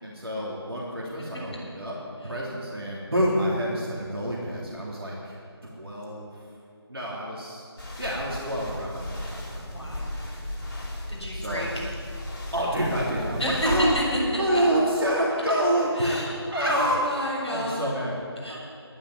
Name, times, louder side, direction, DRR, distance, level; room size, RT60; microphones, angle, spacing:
voice 1, 0.0-2.0 2.2-6.4 6.9-7.7 8.0-9.6 11.2-11.7 12.5-14.0 14.4-16.2 16.5-17.0 17.5-18.6, equal, 60° right, -4 dB, 3.1 m, -28 dB
sound 1, 7.8-14.0, left 1 dB, 45° left, 4.3 m, -35 dB
voice 2, 9.7-10.1 11.1-11.7 13.4-14.0 14.5-14.6 15.9-17.9 18.4-18.6, equal, 5° left, -16 dB, 4.9 m, -29 dB
11.5 x 11.0 x 9.9 m, 2.4 s
figure-of-eight pair, 165°, 14 cm